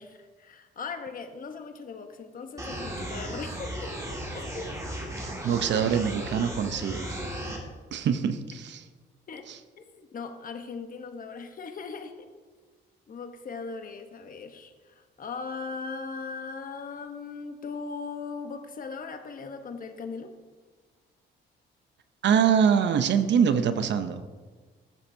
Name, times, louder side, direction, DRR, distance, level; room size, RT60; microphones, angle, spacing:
voice 1, 0.0-3.9 4.3-4.7 9.3-9.4 9.8-12.3 13.1-20.3, left 4 dB, 45° left, 6 dB, 1.0 m, -39 dB
sound 1, 2.6-7.6, equal, 15° right, 2.2 m, -35 dB
voice 2, 5.2-7.2 7.9-8.8 9.5-9.6 22.2-24.2, right 7 dB, 65° right, 10 dB, 0.7 m, -24 dB
14.0 x 7.3 x 2.7 m, 1.4 s
cardioid pair, 90°, 20 cm